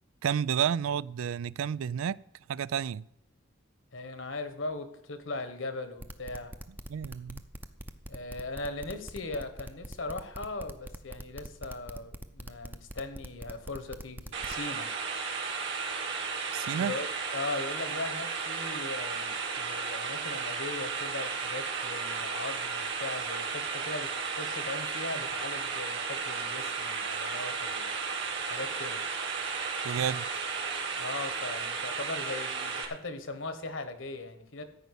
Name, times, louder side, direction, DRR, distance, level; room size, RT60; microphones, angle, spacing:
voice 1, 0.2-2.2 2.5-3.0 6.9-7.4 16.5-16.9 29.8-30.3, right 8 dB, 90° right, 0.3 m, -30 dB
voice 2, 3.9-6.5 8.1-14.9 16.8-27.9 28.5-29.0 30.9-34.6, left 2 dB, 65° left, 1.4 m, -39 dB
sound 1, 6.0-14.6, right 1 dB, 10° right, 0.6 m, -43 dB
sound 2, 14.3-32.9, right 5 dB, 65° right, 1.9 m, -34 dB
13.5 x 5.3 x 8.2 m
head